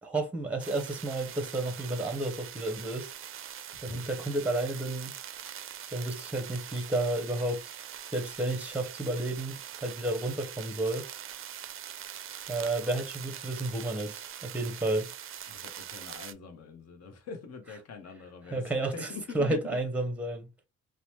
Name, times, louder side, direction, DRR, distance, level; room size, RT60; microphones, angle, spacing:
voice 1, 0.0-3.1 3.8-5.1 5.9-7.6 8.1-9.5 9.8-11.0 12.5-15.1 18.5-19.1 19.3-20.5, right 2 dB, 5° right, 0.7 m, -31 dB
sound 1, 0.6-16.3, right 10 dB, 45° right, 0.4 m, -43 dB
voice 2, 15.5-19.6, left 5 dB, 55° left, 0.9 m, -44 dB
2.9 x 2.1 x 3.0 m
cardioid pair, 90°, 30 cm